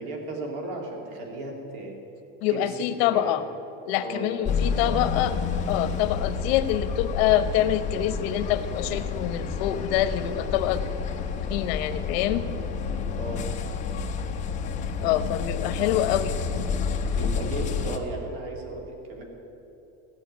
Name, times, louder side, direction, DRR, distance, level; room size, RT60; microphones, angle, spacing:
voice 1, 0.0-2.0 2.5-2.8 3.1-3.4 4.0-4.5 4.7-5.2 13.2-13.4 17.1-19.2, right 2 dB, 75° right, 1 dB, 3.0 m, -35 dB
voice 2, 2.4-3.4 3.9-5.4 5.7-10.8 11.5-12.4 15.0-16.7, left 12 dB, 85° left, 11 dB, 0.9 m, -25 dB
sound 1, 4.4-18.0, left 5 dB, 25° left, 0.8 m, -29 dB
15.5 x 6.6 x 9.5 m, 2.9 s
cardioid pair, 175°, 30 cm